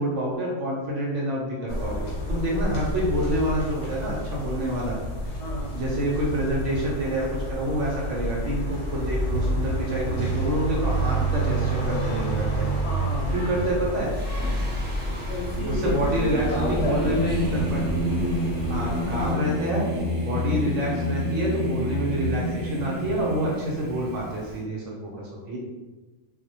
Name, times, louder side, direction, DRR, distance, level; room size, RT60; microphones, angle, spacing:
voice 1, 0.0-5.0 5.7-12.7 13.3-14.1 15.6-17.8 18.7-19.8 20.2-25.6, right 1 dB, 75° right, -3 dB, 0.9 m, -27 dB
sound 1, 1.7-19.3, right 1 dB, 85° left, 1.1 m, -29 dB
voice 2, 5.4-5.7 12.8-13.4 15.2-17.6, left 1 dB, 65° left, -4 dB, 0.8 m, -31 dB
Singing, 14.1-24.5, left 1 dB, 15° right, 0.3 m, -29 dB
2.3 x 2.0 x 2.7 m, 1.2 s
omnidirectional pair, 1.3 m